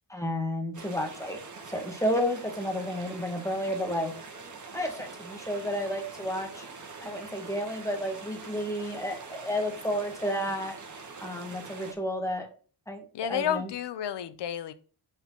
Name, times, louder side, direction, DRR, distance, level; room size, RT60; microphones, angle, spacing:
voice 1, 0.1-1.4 1.7-4.1 4.7-6.7 7.0-10.8 11.2-12.5 12.9-13.7, equal, 5° left, 2 dB, 1.9 m, -31 dB
sound 1, 0.7-11.9, right 4 dB, 45° right, 1.8 m, -44 dB
voice 2, 13.1-14.7, left 9 dB, 90° left, 13 dB, 0.9 m, -31 dB
5.6 x 5.4 x 5.8 m, 0.38 s
wide cardioid pair, 140°, 41 cm